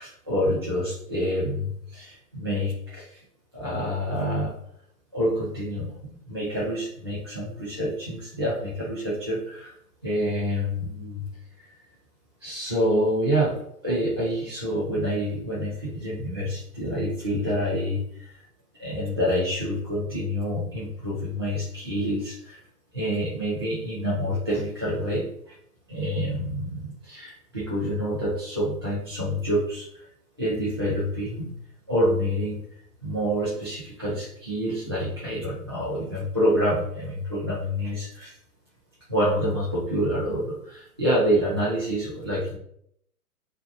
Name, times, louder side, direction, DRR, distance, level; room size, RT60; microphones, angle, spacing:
voice 1, 0.0-3.2 3.5-4.5 5.1-9.7 10.0-11.3 11.6-11.7 12.4-13.5 13.8-18.4 18.8-22.6 22.9-25.6 25.9-30.1 30.4-31.5 31.9-32.6 33.0-38.4 39.1-42.6, equal, 20° right, -9 dB, 0.3 m, -27 dB
6.7 x 2.6 x 2.4 m, 0.71 s
figure-of-eight pair, 125°, 47 cm